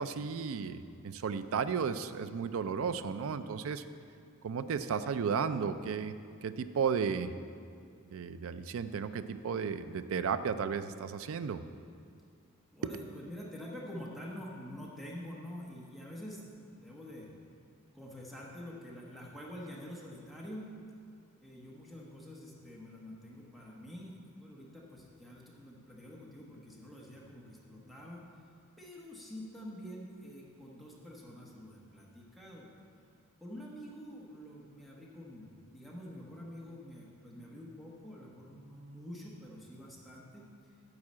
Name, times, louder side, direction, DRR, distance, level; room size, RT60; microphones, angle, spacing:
voice 1, 0.0-3.8 4.4-6.1 6.4-7.3 8.1-11.6, right 6 dB, 65° right, 12 dB, 0.4 m, -34 dB
voice 2, 12.7-16.4 16.7-17.3 17.9-20.7 21.4-28.2 28.8-32.7 33.4-40.7, equal, ahead, -4 dB, 1.1 m, -47 dB
9.7 x 4.7 x 7.3 m, 2.3 s
head